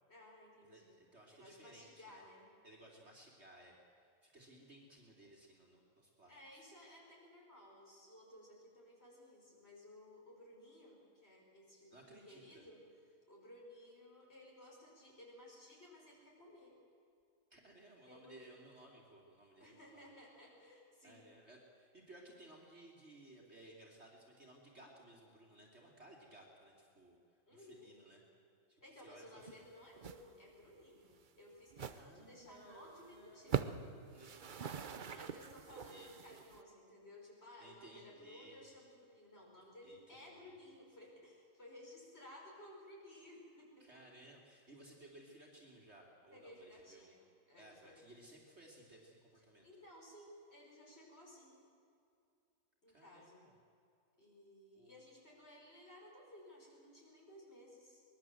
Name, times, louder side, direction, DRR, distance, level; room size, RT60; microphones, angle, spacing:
voice 1, 0.1-1.0 1.3-2.5 6.3-12.0 12.3-12.8 13.3-16.8 18.1-18.5 19.6-21.3 27.5-27.9 28.8-33.8 35.0-44.0 46.3-48.0 49.6-51.6 52.8-53.5 54.2-58.0, left 1 dB, 35° left, -2 dB, 6.0 m, -58 dB
voice 2, 0.7-2.2 2.6-6.6 11.9-12.7 17.5-20.0 21.0-27.2 27.5-28.2 28.7-29.6 31.9-35.1 35.7-36.1 37.6-38.6 39.8-40.5 43.8-47.1 47.6-49.7 52.9-53.5 54.7-54.9, right 1 dB, 35° right, -2 dB, 3.2 m, -60 dB
sound 1, 29.4-29.7 30.0-30.2 30.5-30.7 31.1-31.2 31.7-32.0 32.5-32.6 32.9-33.0 33.4-33.9 34.1-36.6, right 7 dB, 90° right, 0.4 m, -42 dB
23.5 x 21.0 x 7.8 m, 2.5 s
omnidirectional pair, 2.0 m